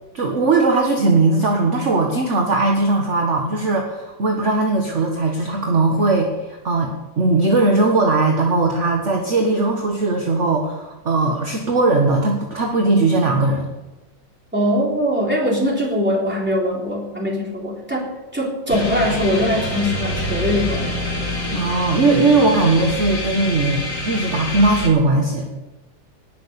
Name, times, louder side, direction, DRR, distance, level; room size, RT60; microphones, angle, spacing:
voice 1, 0.1-13.7 21.5-25.5, right 3 dB, 40° right, 1 dB, 1.6 m, -19 dB
voice 2, 14.5-20.9, equal, 5° right, -3 dB, 3.7 m, -21 dB
sound 1, 18.7-24.9, left 1 dB, 55° left, 3.7 m, -26 dB
19.5 x 6.9 x 6.8 m, 1.1 s
omnidirectional pair, 2.1 m